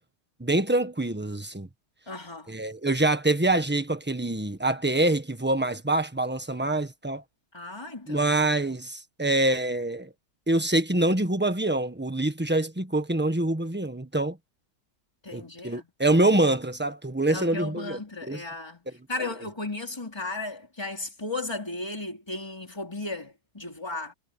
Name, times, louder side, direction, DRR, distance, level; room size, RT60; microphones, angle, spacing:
voice 1, 0.4-1.7 2.5-7.2 8.1-10.1 10.5-14.4 15.3-18.4, right 2 dB, 5° right, 1.2 m, -25 dB
voice 2, 2.1-2.5 7.5-8.3 15.2-15.9 17.3-18.8 19.1-24.1, left 2 dB, 15° left, 4.2 m, -35 dB
omnidirectional pair, 2.0 m